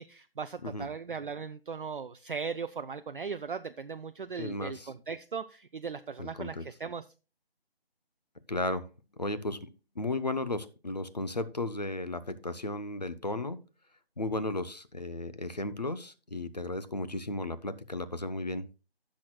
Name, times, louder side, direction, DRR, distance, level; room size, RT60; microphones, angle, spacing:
voice 1, 0.0-7.0, right 5 dB, 55° right, 10 dB, 0.4 m, -38 dB
voice 2, 4.4-4.9 6.2-6.6 8.5-8.9 9.2-9.7 10.0-13.6 14.2-18.7, left 2 dB, 40° left, 14 dB, 0.6 m, -34 dB
16.0 x 6.2 x 2.2 m, 0.31 s
figure-of-eight pair, 175°, 31 cm